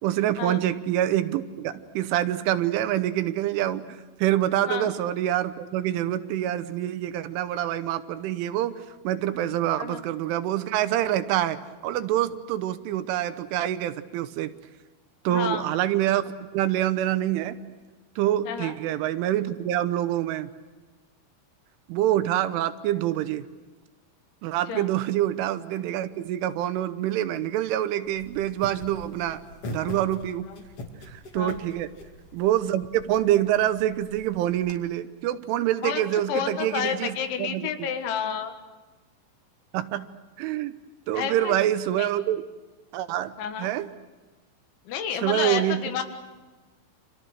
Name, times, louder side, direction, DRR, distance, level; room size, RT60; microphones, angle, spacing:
voice 1, 0.0-14.5 15.2-17.6 18.2-20.5 21.9-23.5 24.4-29.4 29.7-30.5 31.1-31.9 32.3-37.9 39.7-40.1 40.4-40.7 41.1-42.4 42.9-43.9 45.2-45.8, right 12 dB, 80° right, 12 dB, 3.4 m, -26 dB
voice 2, 15.3-15.7 18.5-18.7 24.7-24.9 30.5-30.6 31.3-31.6 35.8-38.5 41.1-41.6 42.0-42.1 43.4-43.7 44.9-46.0, left 8 dB, 70° left, 7 dB, 3.8 m, -30 dB
sound 1, 28.1-34.7, left 1 dB, 40° left, 2.5 m, -42 dB
30.0 x 27.0 x 6.5 m, 1.2 s
omnidirectional pair, 5.7 m